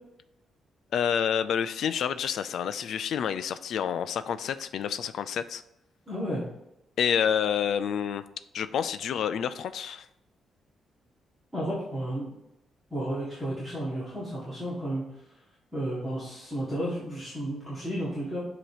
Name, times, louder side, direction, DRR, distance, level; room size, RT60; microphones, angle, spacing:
voice 1, 0.9-5.6 7.0-8.2 8.5-10.1, left 8 dB, 65° left, 13 dB, 0.3 m, -28 dB
voice 2, 6.1-6.4 11.5-12.3 12.9-15.0 15.7-18.4, right 1 dB, 5° right, -9 dB, 1.8 m, -32 dB
7.7 x 2.9 x 4.9 m, 0.87 s
cardioid pair, 150°, 0 cm